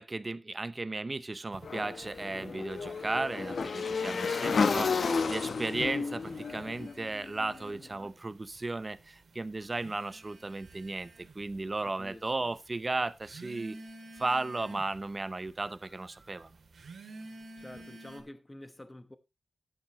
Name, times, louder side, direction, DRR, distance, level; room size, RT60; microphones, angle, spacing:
voice 1, 0.0-13.8 14.2-16.5, right 2 dB, 25° right, 0.6 m, -35 dB
sound 1, 1.5-4.6 4.9-5.7 6.1-18.2, right 2 dB, 60° right, 2.6 m, -52 dB
Motorcycle / Engine, 1.6-7.8, left 5 dB, 60° left, 0.8 m, -32 dB
voice 2, 11.8-12.5 17.6-19.2, left 1 dB, 15° left, 1.0 m, -48 dB
13.5 x 8.8 x 3.1 m
wide cardioid pair, 170°, 0 cm